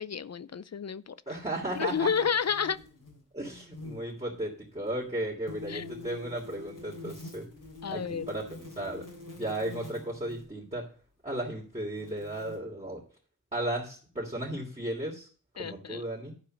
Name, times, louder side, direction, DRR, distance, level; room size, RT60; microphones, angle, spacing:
voice 1, 0.0-1.2 1.8-2.8 5.7-5.8 7.8-8.3 15.6-16.0, left 7 dB, 55° left, 0.5 m, -30 dB
voice 2, 1.3-2.1 3.3-7.5 7.9-10.8 11.2-13.0 13.5-15.3 15.6-16.3, right 1 dB, 20° right, 3.1 m, -35 dB
sound 1, 1.7-3.2 3.5-4.1 5.5-10.5 11.3-11.4 12.0-12.6, left 2 dB, 85° left, 3.2 m, -45 dB
12.0 x 4.9 x 6.6 m
wide cardioid pair, 60°, 31 cm